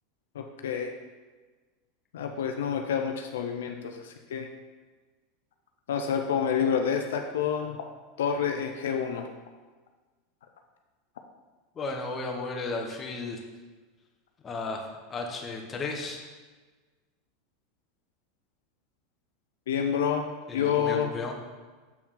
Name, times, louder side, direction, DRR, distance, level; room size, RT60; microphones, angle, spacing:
voice 1, 0.3-0.9 2.1-4.5 5.9-7.9 8.2-9.3 19.7-20.3 20.5-21.1, left 7 dB, 80° left, 4 dB, 0.5 m, -28 dB
voice 2, 11.7-13.4 14.4-16.2 20.5-21.3, left 3 dB, 25° left, 1 dB, 1.1 m, -34 dB
7.2 x 4.5 x 3.8 m, 1.3 s
hypercardioid pair, 100°, 0 cm